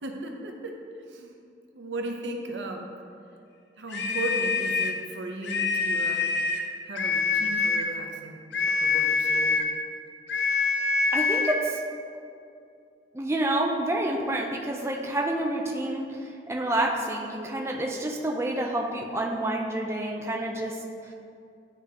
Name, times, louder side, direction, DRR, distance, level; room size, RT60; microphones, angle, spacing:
voice 1, 0.0-0.7 1.1-1.3 1.7-2.9 3.8-6.3 6.9-9.6, right 2 dB, 90° right, 2 dB, 0.7 m, -36 dB
sound 1, 3.9-5.0 5.4-6.7 6.9-7.9 8.5-9.7 10.3-11.6, left 4 dB, 75° left, 0.6 m, -25 dB
voice 2, 11.1-11.8 13.1-21.1, right 1 dB, 15° right, 0 dB, 0.4 m, -28 dB
10.5 x 3.6 x 2.9 m, 2.5 s
head